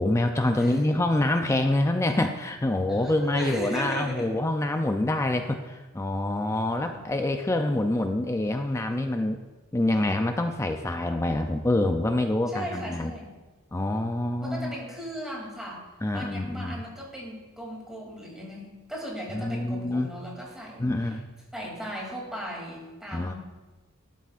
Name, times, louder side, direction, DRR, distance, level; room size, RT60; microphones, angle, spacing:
voice 1, 0.0-9.4 9.7-13.1 13.7-14.8 16.0-16.8 19.3-20.1 20.8-21.3 23.1-23.3, left 1 dB, 15° left, 5 dB, 0.4 m, -26 dB
voice 2, 2.9-4.4 6.8-7.0 12.5-13.3 14.4-21.1 21.5-23.4, equal, 5° right, -4 dB, 2.8 m, -37 dB
12.5 x 11.5 x 2.5 m, 1.2 s
head